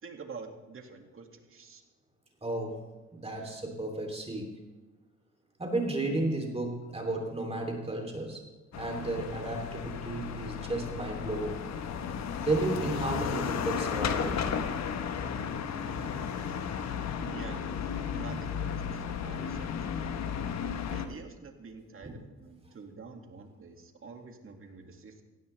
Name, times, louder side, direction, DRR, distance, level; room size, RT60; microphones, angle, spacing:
voice 1, 0.0-1.8 3.5-3.6 17.2-17.7 18.1-20.3 20.9-25.2, right 5 dB, 45° right, 4 dB, 2.3 m, -47 dB
voice 2, 2.4-2.8 3.1-4.6 5.6-8.4 8.8-11.7 12.4-14.5 22.0-22.1, right 2 dB, 20° right, 2 dB, 3.2 m, -33 dB
sound 1, 8.7-21.1, left 7 dB, 60° left, 1.3 m, -34 dB
17.5 x 15.5 x 3.4 m, 1.2 s
cardioid pair, 90°, 30 cm